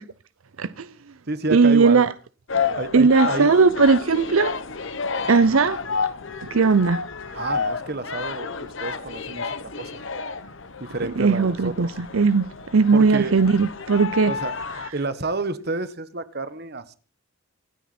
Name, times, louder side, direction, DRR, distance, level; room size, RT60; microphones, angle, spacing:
voice 1, 0.6-0.9 1.5-2.1 2.9-4.5 5.3-5.8 6.5-7.0 7.3-7.4 11.2-12.5 12.7-14.3, right 4 dB, 75° right, 0.6 m, -18 dB
voice 2, 1.3-2.0 2.8-3.5 7.4-10.1 10.8-11.9 12.9-13.3 14.3-14.6 14.9-17.0, right 3 dB, 45° right, 1.3 m, -30 dB
sound 1, 2.5-14.9, left 5 dB, 60° left, 1.1 m, -30 dB
25.5 x 9.3 x 4.3 m
head